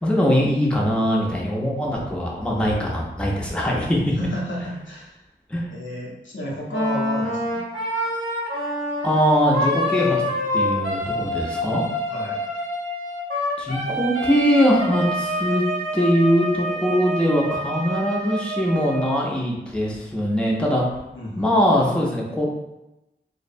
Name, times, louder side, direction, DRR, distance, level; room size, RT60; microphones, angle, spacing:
voice 1, 0.0-4.1 5.5-5.7 9.0-10.2 10.5-11.9 13.6-15.6 15.9-20.8 21.4-22.4, equal, 5° left, -3 dB, 0.5 m, -21 dB
voice 2, 4.0-5.2 5.7-7.6 12.1-12.5 21.1-21.8, equal, 75° left, -4 dB, 0.6 m, -32 dB
Wind instrument woodwind instrument, 6.7-19.2, equal, 85° right, 0.8 m, -27 dB
2.5 x 2.0 x 2.5 m, 0.92 s
wide cardioid pair, 40°, 20 cm